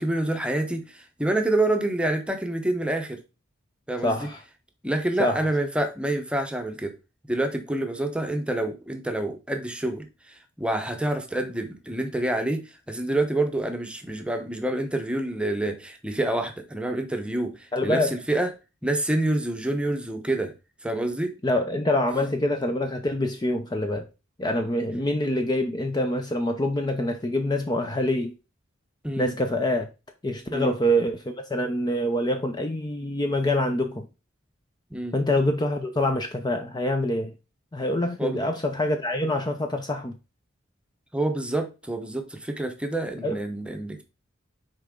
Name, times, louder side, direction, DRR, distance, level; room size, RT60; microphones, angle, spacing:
voice 1, 0.0-3.2 3.9-4.3 4.8-6.9 7.3-10.1 10.6-18.5 18.8-20.5 20.8-21.3 29.0-29.4 30.5-30.7 34.9-35.2 38.2-38.4 41.1-44.0, right 1 dB, 5° right, 0.9 m, -27 dB
voice 2, 4.0-4.4 5.2-5.4 17.7-18.1 21.4-24.1 24.4-28.3 29.2-29.9 30.2-34.1 35.1-37.3 37.7-40.2 43.2-43.4, left 1 dB, 20° left, 0.6 m, -25 dB
6.5 x 4.4 x 3.7 m
head